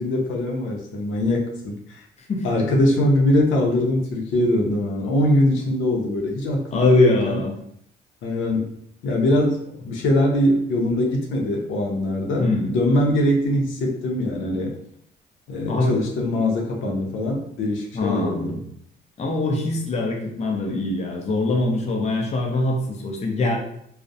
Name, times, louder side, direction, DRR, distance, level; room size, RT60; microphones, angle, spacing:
voice 1, 0.0-2.0 2.4-7.4 8.2-8.7 9.0-14.8 15.5-18.6, left 1 dB, 75° left, 0 dB, 0.6 m, -22 dB
voice 2, 6.7-7.5 12.4-12.8 15.7-15.9 17.9-18.6 19.2-23.6, left 2 dB, 35° left, 1 dB, 0.5 m, -23 dB
2.3 x 2.0 x 2.6 m, 0.70 s
cardioid pair, 90°, 20 cm